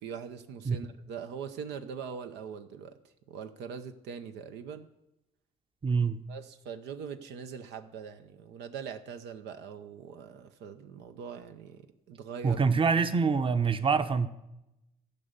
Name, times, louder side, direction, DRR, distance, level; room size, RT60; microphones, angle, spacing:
voice 1, 0.0-2.9 3.3-4.9 6.3-12.6, right 7 dB, 90° right, 8 dB, 0.8 m, -42 dB
voice 2, 5.8-6.2 12.4-14.3, right 5 dB, 30° right, 10 dB, 0.8 m, -25 dB
13.5 x 5.4 x 8.1 m, 0.90 s
cardioid pair, 80°, 17 cm